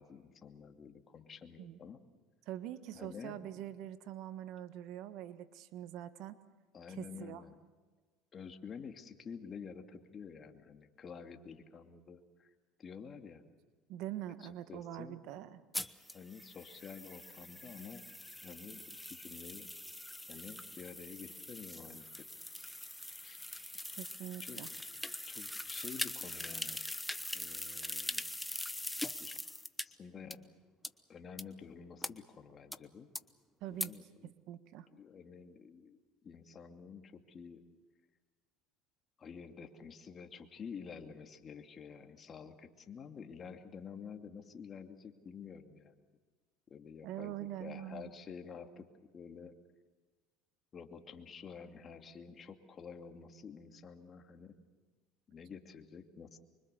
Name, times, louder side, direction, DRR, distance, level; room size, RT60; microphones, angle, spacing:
voice 1, 0.0-2.0 2.9-3.5 6.7-7.6 8.3-12.5 12.8-13.4 14.4-15.4 16.1-18.0 18.4-19.7 20.3-22.1 23.2-23.4 24.4-24.6 25.3-26.8 27.3-28.2 29.2-29.3 29.8-30.4 31.1-33.1 33.7-34.3 34.9-37.6 39.2-46.0 46.7-48.9 49.1-49.5 50.7-54.5 55.3-56.4, left 6 dB, 35° left, 5 dB, 2.6 m, -50 dB
voice 2, 2.5-6.4 6.9-7.4 13.9-15.6 23.9-24.7 33.6-33.9 34.2-34.9 47.0-48.1, right 12 dB, 65° right, 12 dB, 1.4 m, -44 dB
sound 1, 15.7-29.8 30.3-30.4 30.8-30.9 31.4-31.5 32.0-32.1 32.7-32.8 33.1-33.2 33.8-33.9, left 1 dB, 5° left, 1.0 m, -42 dB
25.5 x 24.0 x 6.9 m, 1.3 s
supercardioid pair, 100°, 0 cm